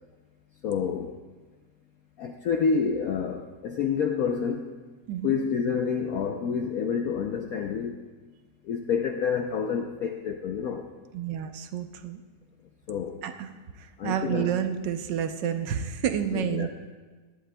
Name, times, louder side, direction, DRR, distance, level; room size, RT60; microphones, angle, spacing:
voice 1, 0.6-1.2 2.2-4.7 5.2-8.0 8.6-10.9 12.9-13.3 14.0-14.5 16.3-16.7, left 6 dB, 65° left, 4 dB, 1.0 m, -28 dB
voice 2, 11.1-12.2 13.2-13.5 13.8-16.7, right 8 dB, 80° right, 8 dB, 1.4 m, -29 dB
18.5 x 11.5 x 2.2 m, 1.4 s
omnidirectional pair, 1.9 m